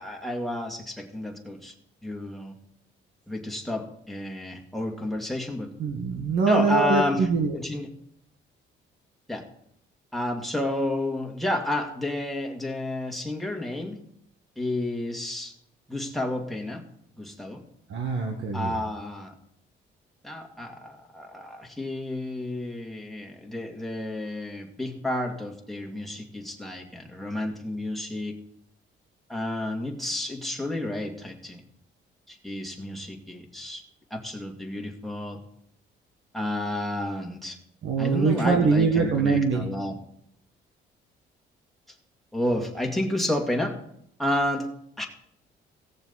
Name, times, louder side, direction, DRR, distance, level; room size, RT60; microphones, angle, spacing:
voice 1, 0.0-1.7 2.0-2.6 3.3-5.7 6.5-7.3 7.5-7.9 9.3-9.4 10.1-14.0 14.6-15.5 15.9-16.8 17.2-17.6 18.5-19.3 20.2-28.4 29.3-31.6 32.3-33.8 34.1-35.4 36.3-37.6 38.0-40.0 42.3-43.8 44.2-44.7 45.0-45.1, left 1 dB, ahead, 0 dB, 2.2 m, -30 dB
voice 2, 5.8-7.6 17.9-18.7 37.8-39.7, right 5 dB, 70° right, 3 dB, 1.5 m, -23 dB
17.5 x 7.0 x 4.1 m, 0.69 s
cardioid pair, 90°, 20 cm